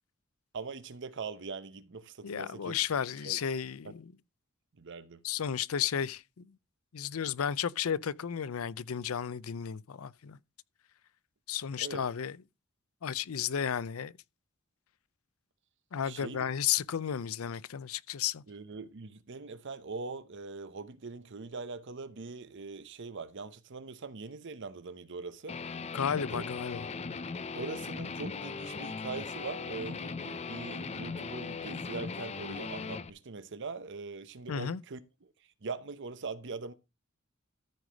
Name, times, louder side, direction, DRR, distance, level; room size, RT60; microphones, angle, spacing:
voice 1, 0.5-2.8 3.2-3.4 4.8-5.2 11.8-12.1 16.0-16.5 18.5-25.6 26.3-26.4 27.5-35.0 35.6-36.7, right 4 dB, 60° right, 0.8 m, -42 dB
voice 2, 2.2-4.1 5.2-6.5 6.9-10.4 11.5-12.4 13.0-14.1 15.9-18.4 25.9-26.9 34.5-34.8, left 8 dB, 80° left, 0.5 m, -33 dB
Guitar, 25.5-33.1, left 4 dB, 30° left, 0.5 m, -39 dB
13.5 x 4.9 x 5.0 m
head